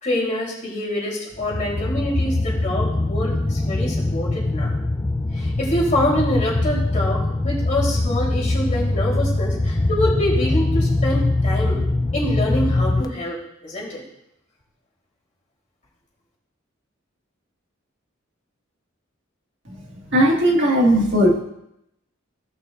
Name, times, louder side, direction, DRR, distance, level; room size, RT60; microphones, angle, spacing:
voice 1, 0.0-4.7 5.3-11.8 12.1-13.4 13.6-14.0, left 1 dB, 40° left, -5 dB, 3.5 m, -25 dB
sound 1, 1.4-13.0, left 2 dB, 20° left, 0.5 m, -22 dB
voice 2, 20.1-21.4, equal, 65° right, -2 dB, 1.9 m, -17 dB
17.0 x 5.9 x 2.5 m, 0.80 s
head